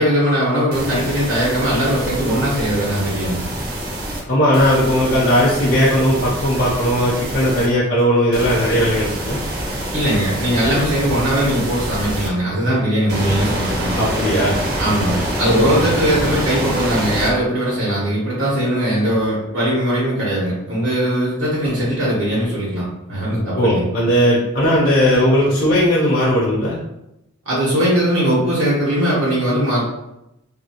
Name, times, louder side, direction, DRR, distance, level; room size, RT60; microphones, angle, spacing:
voice 1, 0.0-3.4 9.9-13.9 14.8-23.9 27.4-29.8, equal, 80° right, -6 dB, 1.1 m, -20 dB
sound 1, 0.7-4.2 4.5-7.7 8.3-12.3 13.1-17.3, right 1 dB, 45° right, 0.6 m, -25 dB
voice 2, 4.3-9.4 14.0-14.6 23.5-26.8, equal, 45° left, -6 dB, 0.5 m, -17 dB
2.7 x 2.6 x 2.8 m, 0.87 s
head